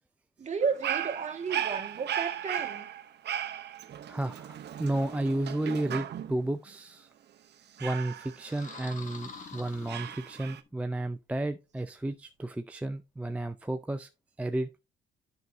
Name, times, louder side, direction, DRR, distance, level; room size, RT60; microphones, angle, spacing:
voice 1, 0.4-2.9, right 5 dB, 35° right, 1.5 m, -33 dB
Dog, 0.6-6.5 7.8-9.3 9.9-10.6, right 10 dB, 60° right, 0.7 m, -36 dB
voice 2, 4.1-7.1 7.8-14.1 14.4-14.7, right 1 dB, 5° right, 0.4 m, -32 dB
sound 1, 8.4-10.7, left 4 dB, 40° left, 1.5 m, -46 dB
9.2 x 5.4 x 2.5 m
cardioid pair, 90°, 20 cm